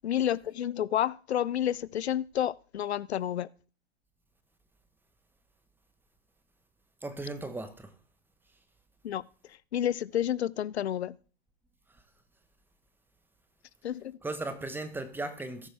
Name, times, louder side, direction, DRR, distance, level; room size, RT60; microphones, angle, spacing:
voice 1, 0.0-3.5 9.0-9.2 9.7-11.2 13.8-14.2, left 10 dB, 90° left, 0.5 m, -30 dB
voice 2, 7.0-7.9 14.2-15.7, right 2 dB, 5° right, 1.1 m, -36 dB
18.5 x 6.2 x 3.4 m
hypercardioid pair, 120°, 32 cm